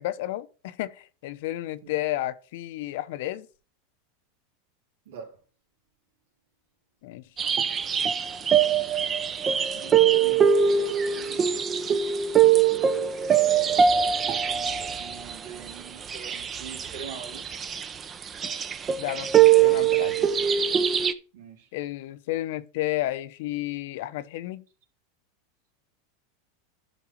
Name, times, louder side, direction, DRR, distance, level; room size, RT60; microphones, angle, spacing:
voice 1, 0.0-3.5 7.0-7.2 19.0-20.3 21.7-24.6, left 15 dB, 65° left, 0.8 m, -32 dB
voice 2, 5.1-5.4 9.7-11.4 14.3-17.6 21.3-21.7, right 7 dB, 80° right, 3.5 m, -44 dB
sound 1, 7.4-21.1, right 8 dB, 25° right, 0.7 m, -22 dB
12.0 x 5.4 x 4.5 m
supercardioid pair, 140°, 0 cm